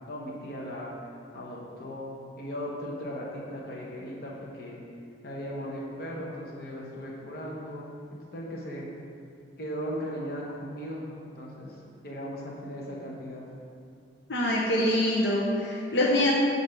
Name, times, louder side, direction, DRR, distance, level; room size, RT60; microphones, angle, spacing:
voice 1, 0.1-1.0 1.3-4.8 5.2-7.9 8.3-8.9 9.6-11.8 12.0-13.5, equal, 60° left, -4 dB, 1.0 m, -37 dB
voice 2, 14.3-16.3, left 1 dB, 80° left, -4 dB, 0.8 m, -24 dB
8.1 x 2.7 x 5.8 m, 2.4 s
head